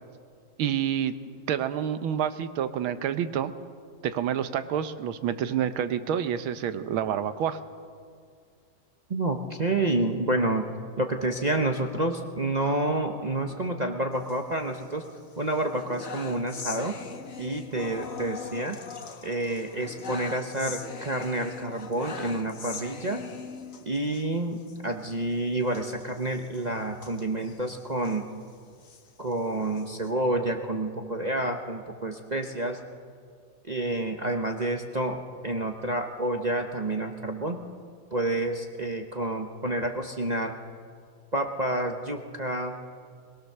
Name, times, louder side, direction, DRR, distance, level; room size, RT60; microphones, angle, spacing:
voice 1, 0.6-1.2 1.5-3.5 4.0-7.6, right 9 dB, 85° right, 11 dB, 1.7 m, -28 dB
voice 2, 9.1-10.7 11.0-15.0 15.4-17.0 17.4-18.8 19.2-23.2 23.9-28.2 29.2-32.8 33.6-37.6 38.1-40.6 41.3-42.8, right 1 dB, 40° right, 3 dB, 0.5 m, -29 dB
sound 1, 14.1-15.1 15.5-24.2 24.6-24.8 25.0-25.1 25.7-28.2 28.7-30.1, left 5 dB, 45° left, 1.4 m, -41 dB
21.0 x 21.0 x 6.6 m, 2.1 s
omnidirectional pair, 2.2 m